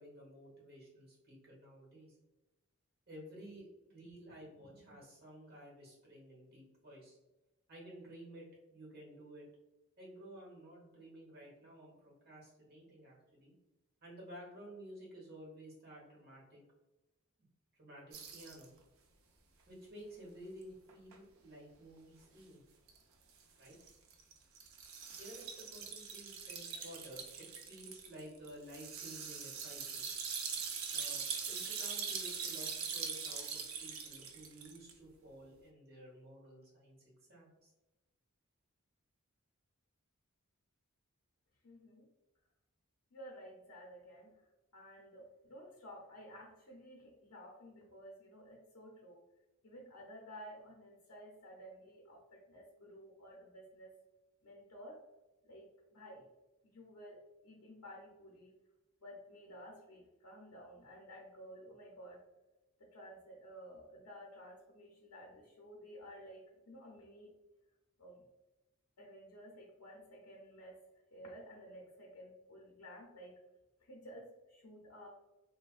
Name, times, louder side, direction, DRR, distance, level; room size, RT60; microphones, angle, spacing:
voice 1, 0.0-2.2 3.1-7.2 7.7-8.5 8.7-9.4 10.0-13.5 14.0-16.6 17.8-18.7 19.7-22.6 23.6-23.7 25.2-30.1 30.9-37.7, equal, 50° right, -4 dB, 1.1 m, -53 dB
sound 1, 18.1-18.6 20.6-20.7 20.9-21.2 22.9-23.0 23.6-34.9, right 6 dB, 65° right, 0.4 m, -42 dB
voice 2, 41.6-42.1 43.1-44.4 44.7-49.2 49.6-53.9 54.4-55.0 55.4-56.3 56.6-58.6 59.0-62.2 62.8-67.3 68.0-68.3 69.0-70.8 71.1-73.4 73.8-75.1, equal, 85° left, -2 dB, 0.6 m, -53 dB
3.2 x 2.2 x 2.3 m, 1.0 s
head